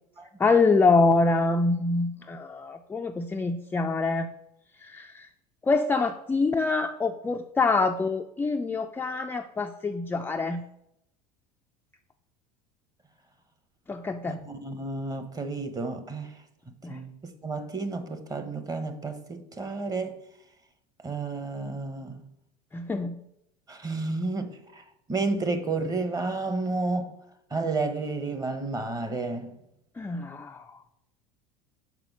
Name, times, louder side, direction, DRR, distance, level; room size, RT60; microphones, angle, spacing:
voice 1, 0.4-4.3 4.8-5.3 5.6-10.6 13.9-14.4 16.8-17.0 22.7-23.2 30.0-30.8, left 3 dB, 10° left, 0.3 m, -25 dB
voice 2, 14.3-16.3 16.9-20.2 21.0-22.2 23.7-27.1 27.5-29.6, right 3 dB, 20° right, 0.9 m, -31 dB
6.0 x 4.7 x 5.9 m
supercardioid pair, 100°, 20 cm